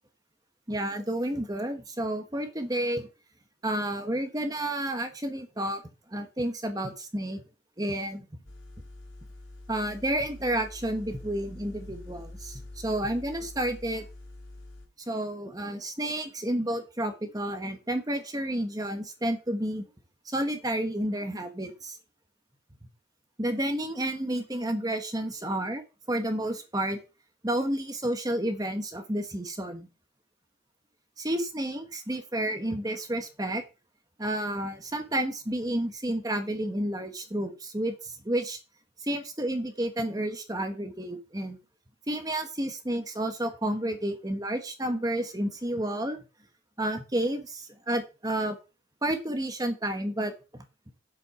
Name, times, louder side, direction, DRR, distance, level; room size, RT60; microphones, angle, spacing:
voice 1, 0.7-3.1 3.6-5.8 6.1-7.4 7.8-8.3 9.7-14.0 15.1-19.8 20.2-22.0 23.4-27.0 27.4-29.9 31.2-33.6 34.2-38.6 39.0-41.6 42.1-46.2 46.8-48.6 49.0-50.6, right 1 dB, 20° right, 6 dB, 1.2 m, -30 dB
sound 1, 8.4-14.9, left 2 dB, 80° left, 3.6 m, -45 dB
7.8 x 7.6 x 5.7 m, 0.31 s
head